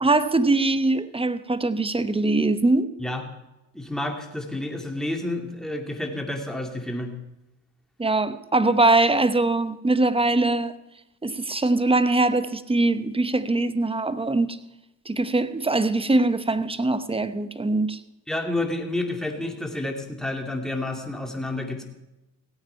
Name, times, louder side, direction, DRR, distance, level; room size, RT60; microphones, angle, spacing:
voice 1, 0.0-2.9 8.0-10.7 11.2-14.6 15.1-18.0, right 2 dB, 15° right, 0.9 m, -22 dB
voice 2, 3.7-7.1 18.3-21.8, left 1 dB, ahead, 2.4 m, -30 dB
16.5 x 8.8 x 5.6 m
supercardioid pair, 70°, 38 cm